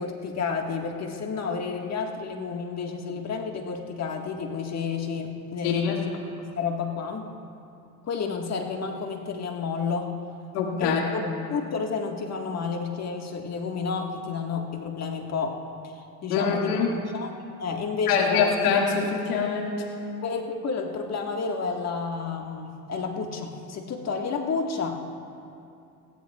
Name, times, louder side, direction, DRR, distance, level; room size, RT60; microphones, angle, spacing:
voice 1, 0.0-6.1 6.4-7.3 8.0-10.1 10.8-11.2 11.5-15.6 16.2-16.8 17.1-17.3 17.6-18.5 20.2-25.0, left 5 dB, 35° left, 2 dB, 1.6 m, -30 dB
voice 2, 5.6-6.0 10.5-11.1 16.3-16.9 18.1-19.8, left 6 dB, 80° left, -1 dB, 2.1 m, -24 dB
21.5 x 16.0 x 2.4 m, 2.6 s
hypercardioid pair, 90°, 45 cm